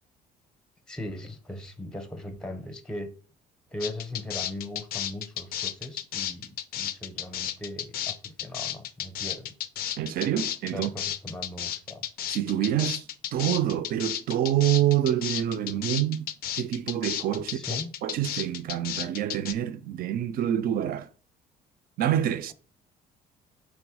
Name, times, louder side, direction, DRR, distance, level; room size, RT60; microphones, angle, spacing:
voice 1, 0.9-3.1 3.7-9.6 10.7-12.0 17.5-17.9, left 1 dB, 5° left, 0.6 m, -39 dB
sound 1, 3.8-19.5, left 11 dB, 65° left, 0.4 m, -33 dB
voice 2, 10.0-10.9 12.3-21.1 22.0-22.5, right 11 dB, 60° right, 0.4 m, -27 dB
3.5 x 3.1 x 4.8 m
cardioid pair, 110°, 17 cm